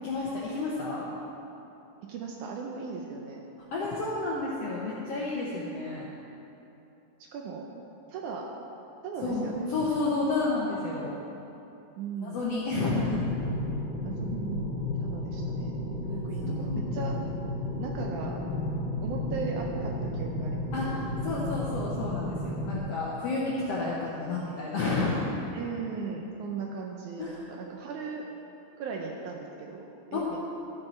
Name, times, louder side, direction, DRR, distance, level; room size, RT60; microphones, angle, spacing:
voice 1, 0.0-1.1 3.7-6.1 9.2-11.1 12.2-13.2 16.4-17.0 20.7-25.3 27.2-27.4 30.1-30.4, left 3 dB, 70° left, -5 dB, 1.5 m, -31 dB
voice 2, 2.0-3.5 7.3-7.7 8.1-8.5 9.0-9.7 12.0-12.5 14.0-14.7 15.0-15.8 16.1-17.2 17.8-18.4 19.0-20.7 25.5-28.2 28.8-30.4, right 5 dB, 75° right, 0 dB, 1.9 m, -37 dB
sound 1, 12.9-22.8, left 1 dB, 40° right, 0.8 m, -33 dB
13.0 x 6.6 x 4.3 m, 2.9 s
omnidirectional pair, 4.0 m